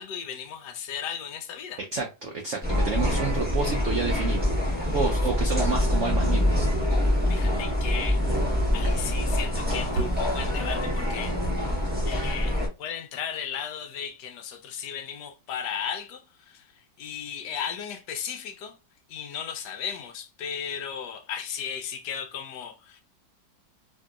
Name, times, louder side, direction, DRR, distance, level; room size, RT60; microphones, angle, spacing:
voice 1, 0.0-1.8 7.3-8.2 8.7-11.4 12.1-16.7 17.0-18.7 19.1-23.0, left 8 dB, 70° left, 1.1 m, -35 dB
voice 2, 1.9-6.7, right 4 dB, 90° right, 0.6 m, -30 dB
sound 1, 2.6-12.7, left 1 dB, 10° right, 0.5 m, -25 dB
Dog, 9.6-10.3, equal, 65° right, 1.2 m, -38 dB
2.9 x 2.7 x 2.3 m
omnidirectional pair, 2.0 m